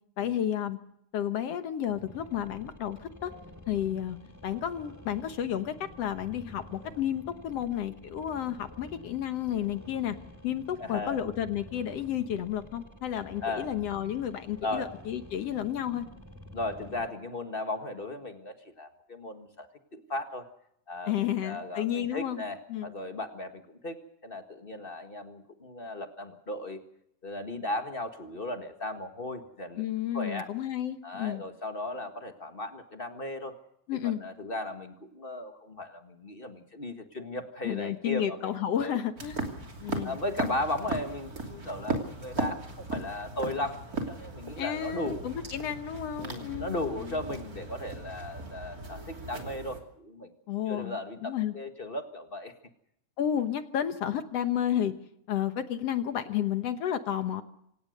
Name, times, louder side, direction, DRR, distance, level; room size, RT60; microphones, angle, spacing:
voice 1, 0.2-0.8 1.1-3.3 3.7-4.2 4.4-10.2 10.4-16.1 21.1-22.4 22.7-22.9 29.8-31.4 33.9-34.2 37.6-39.5 39.8-40.1 44.6-47.2 50.5-51.5 53.2-54.9 55.3-57.4, left 10 dB, 60° left, 9 dB, 1.9 m, -31 dB
sound 1, 1.9-17.1, left 1 dB, 5° right, 1.9 m, -49 dB
voice 2, 10.8-11.2 13.4-13.7 14.6-14.9 16.5-20.5 20.9-26.8 27.2-29.8 30.1-30.5 31.0-33.6 34.0-39.0 39.8-45.3 46.2-50.3 50.7-52.5, left 2 dB, 30° left, 6 dB, 1.0 m, -36 dB
sound 2, 39.2-49.8, right 3 dB, 30° right, 3.1 m, -37 dB
27.0 x 17.5 x 6.6 m, 0.75 s
omnidirectional pair, 3.7 m